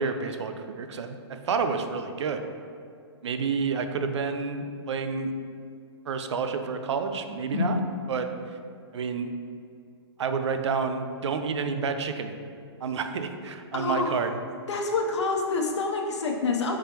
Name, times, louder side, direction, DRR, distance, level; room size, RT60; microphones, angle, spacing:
voice 1, 0.0-2.5 3.2-5.3 6.1-7.8 8.1-8.3 8.9-9.3 10.2-12.3 12.8-14.3, right 5 dB, 80° right, 7 dB, 0.4 m, -29 dB
voice 2, 7.5-7.8 13.7-14.2 14.7-16.8, left 3 dB, 90° left, 1 dB, 0.6 m, -27 dB
4.9 x 3.7 x 2.9 m, 2.4 s
hypercardioid pair, 160°, 14 cm